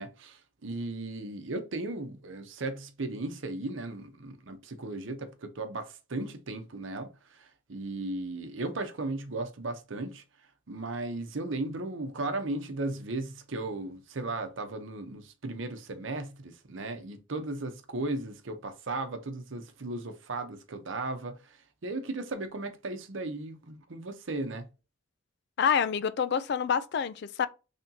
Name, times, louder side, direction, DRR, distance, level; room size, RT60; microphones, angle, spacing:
voice 1, 0.0-10.2 10.7-24.7, right 2 dB, 70° right, 0.8 m, -36 dB
voice 2, 25.6-27.5, left 7 dB, 55° left, 0.3 m, -27 dB
3.5 x 2.8 x 3.8 m
head